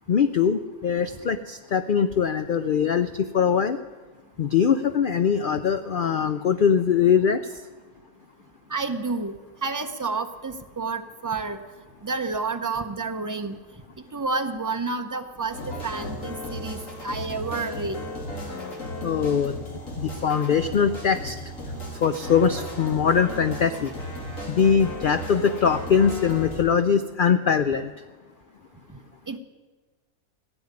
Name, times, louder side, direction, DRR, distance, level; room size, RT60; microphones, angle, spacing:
voice 1, 0.1-3.1 3.3-3.8 4.4-7.4 19.0-19.5 20.0-21.4 22.0-23.9 24.5-27.9, left 7 dB, 80° left, 10 dB, 0.4 m, -22 dB
voice 2, 8.7-9.3 9.6-11.6 12.0-13.6 14.1-18.0 29.3-29.4, right 3 dB, 20° right, 6 dB, 0.5 m, -30 dB
sound 1, 15.5-26.6, left 1 dB, 65° left, 3.0 m, -35 dB
15.5 x 7.1 x 9.7 m, 1.3 s
omnidirectional pair, 1.5 m